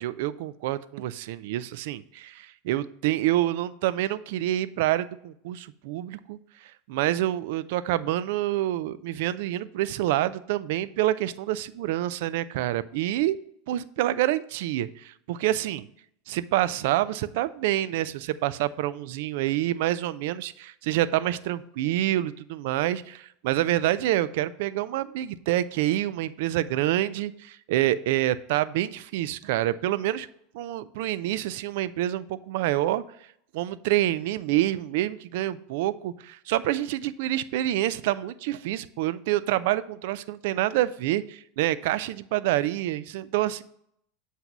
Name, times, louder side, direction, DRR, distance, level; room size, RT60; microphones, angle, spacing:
voice 1, 0.0-13.4 13.7-15.9 16.3-30.3 30.5-33.0 33.5-43.6, right 14 dB, 70° right, 16 dB, 0.4 m, -27 dB
7.8 x 2.7 x 5.9 m, 0.72 s
supercardioid pair, 115°, 0 cm